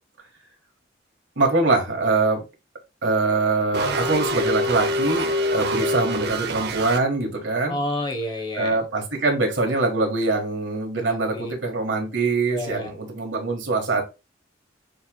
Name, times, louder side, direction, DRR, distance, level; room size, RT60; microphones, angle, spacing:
voice 1, 1.4-2.4 3.0-7.8 8.6-14.0, right 3 dB, 75° right, 1.4 m, -23 dB
sound 1, 3.7-7.0, equal, 55° right, 0.7 m, -25 dB
voice 2, 7.7-8.8 11.0-11.5 12.5-12.9, left 1 dB, 25° left, 0.7 m, -30 dB
6.7 x 3.0 x 2.2 m
head